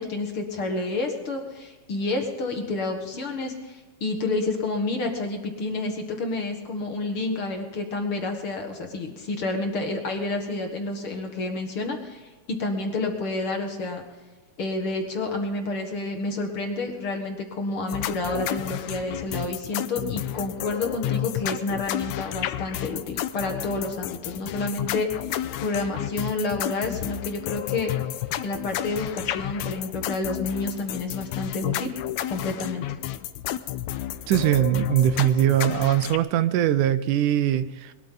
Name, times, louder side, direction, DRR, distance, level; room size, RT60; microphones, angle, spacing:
voice 1, 0.0-14.0 14.6-27.9 28.4-31.9 32.3-32.8, left 3 dB, 45° left, 2.3 m, -29 dB
sound 1, 17.9-36.2, left 12 dB, 80° left, 1.8 m, -31 dB
voice 2, 34.3-37.9, right 12 dB, 80° right, 2.1 m, -21 dB
21.5 x 13.5 x 3.9 m
omnidirectional pair, 3.7 m